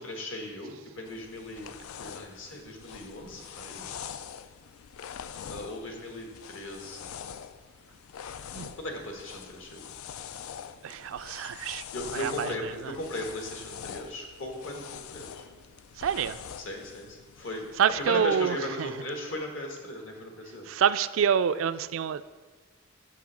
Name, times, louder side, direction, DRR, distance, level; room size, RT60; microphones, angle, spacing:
voice 1, 0.0-3.9 5.5-7.1 8.7-9.9 11.9-15.5 16.6-20.6, left 1 dB, 65° left, 2 dB, 1.5 m, -37 dB
sound 1, 1.1-18.1, left 8 dB, 90° left, 0.4 m, -44 dB
voice 2, 10.8-11.8 12.1-12.5 16.0-16.4 17.8-18.5 20.7-22.2, right 8 dB, 70° right, 13 dB, 0.3 m, -26 dB
7.0 x 5.8 x 6.1 m, 1.4 s
head